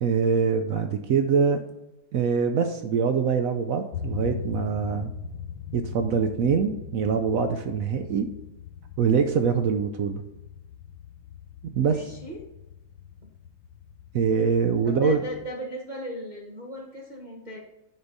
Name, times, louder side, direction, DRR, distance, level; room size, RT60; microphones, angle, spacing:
voice 1, 0.0-1.6 2.1-5.1 5.7-8.3 9.0-10.2 11.7-12.1 14.1-15.2, right 6 dB, 75° right, 6 dB, 0.8 m, -24 dB
sound 1, 3.9-15.5, left 7 dB, 85° left, 1.4 m, -40 dB
voice 2, 11.8-12.4 13.2-13.3 14.8-17.6, equal, 35° right, -2 dB, 0.7 m, -37 dB
9.6 x 4.4 x 4.0 m, 0.93 s
omnidirectional pair, 2.1 m